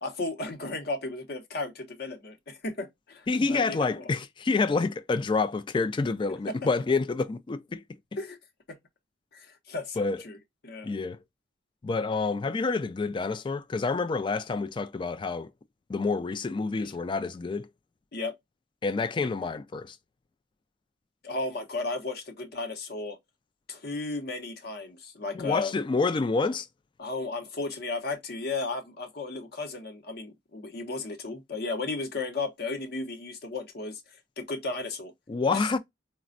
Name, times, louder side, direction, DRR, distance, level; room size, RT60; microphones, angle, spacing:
voice 1, 0.0-4.1 6.3-6.6 8.2-8.4 8.7-8.8 9.3-10.4 10.6-10.9 18.1-18.3 21.2-23.2 23.7-25.7 27.0-35.1 35.5-35.8, left 3 dB, 60° left, 0.7 m, -34 dB
voice 2, 3.3-7.8 10.0-10.2 10.8-11.2 11.8-15.5 15.9-17.7 18.8-20.0 25.3-26.7 35.3-35.8, left 4 dB, 25° left, 0.3 m, -28 dB
4.1 x 2.1 x 2.4 m
head